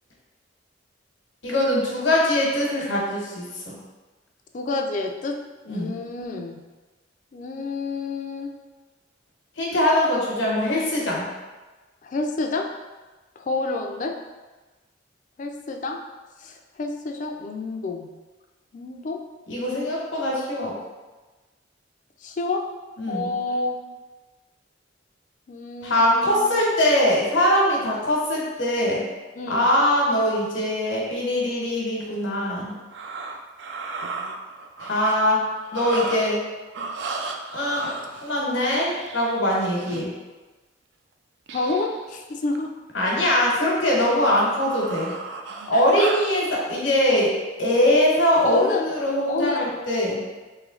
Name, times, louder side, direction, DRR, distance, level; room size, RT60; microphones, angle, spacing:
voice 1, 1.4-3.8 5.7-5.9 9.6-11.3 19.5-20.7 23.0-23.3 25.8-29.0 29.5-32.7 34.8-35.5 35.7-36.4 37.5-37.9 38.2-40.1 42.9-45.1 45.7-50.2, left 1 dB, 85° left, -3 dB, 1.0 m, -22 dB
voice 2, 4.5-5.4 5.6-6.6 7.3-8.5 12.0-12.7 13.4-14.1 15.4-16.0 16.4-18.1 18.7-19.2 22.2-22.6 23.1-23.8 25.5-26.5 29.4-29.7 41.5-42.7 45.7-45.9 48.4-48.9 49.3-49.6, left 3 dB, 40° left, 3 dB, 0.4 m, -29 dB
sound 1, 32.7-35.2 35.6-36.5 36.7-40.1 41.5-42.1 42.4-42.6 43.1-46.3, right 3 dB, 65° right, 0.3 m, -35 dB
3.1 x 3.1 x 3.7 m, 1.2 s
head